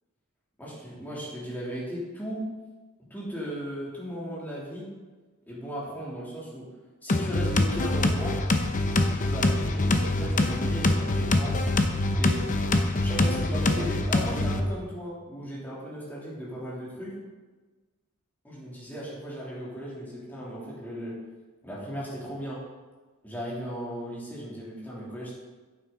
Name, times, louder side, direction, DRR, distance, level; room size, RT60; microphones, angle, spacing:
voice 1, 0.6-2.5 3.1-4.9 5.5-6.6 7.0-8.4 9.2-11.6 12.2-12.4 13.0-17.2 18.4-21.2 21.6-22.6 23.2-25.3, equal, 10° left, -7 dB, 3.1 m, -36 dB
sound 1, 7.1-14.6, left 2 dB, 35° left, 0.7 m, -24 dB
9.5 x 8.5 x 4.0 m, 1.3 s
head